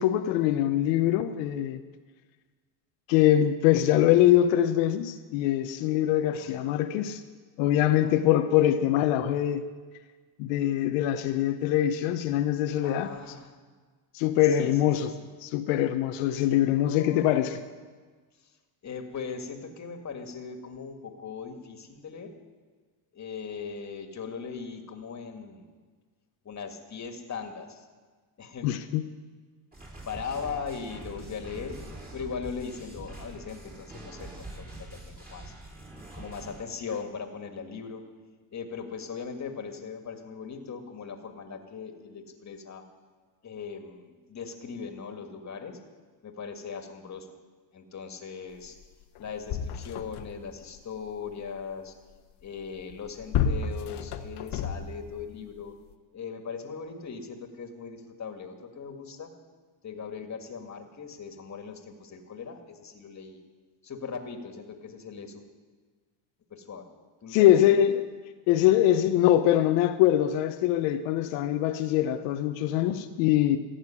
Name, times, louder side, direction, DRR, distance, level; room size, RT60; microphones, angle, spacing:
voice 1, 0.0-1.8 3.1-7.2 7.6-9.6 10.4-13.2 14.1-15.1 15.4-17.6 28.6-29.1 67.3-68.0 68.5-73.6, left 12 dB, 85° left, 0.8 m, -23 dB
voice 2, 6.3-6.7 7.9-8.2 12.8-13.5 14.5-15.1 16.6-17.4 18.8-22.3 23.1-25.7 26.5-27.9 28.4-28.7 30.1-35.5 36.1-38.1 38.5-42.8 43.4-45.8 46.2-47.3 47.7-48.8 49.2-51.9 52.4-55.8 56.1-59.3 59.8-63.4 63.8-65.5 66.5-66.9 67.2-67.8, left 5 dB, 35° left, 2.0 m, -39 dB
sound 1, 29.7-36.6, right 1 dB, 20° right, 4.5 m, -44 dB
sound 2, 48.8-48.9 49.2-50.5 52.8-55.2 55.9-56.0, left 7 dB, 55° left, 1.1 m, -31 dB
15.0 x 6.6 x 9.9 m
supercardioid pair, 100°, 48 cm